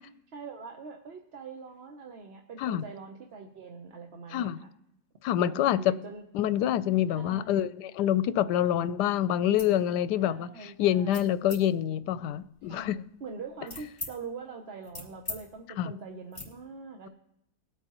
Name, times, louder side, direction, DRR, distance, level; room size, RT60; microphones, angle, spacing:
voice 1, 0.3-4.7 5.4-6.2 7.1-7.7 10.2-11.2 12.7-12.9 13.2-17.1, right 4 dB, 45° right, 0.9 m, -43 dB
voice 2, 5.2-5.8 6.3-12.9 15.8-15.9, left 11 dB, 85° left, 1.2 m, -26 dB
sound 1, 9.4-9.8 10.2-10.6 11.1-11.6 12.3-14.1 14.5-15.4 15.7-15.9 16.3-16.5, left 2 dB, 10° left, 2.5 m, -42 dB
21.5 x 8.2 x 3.0 m
omnidirectional pair, 1.8 m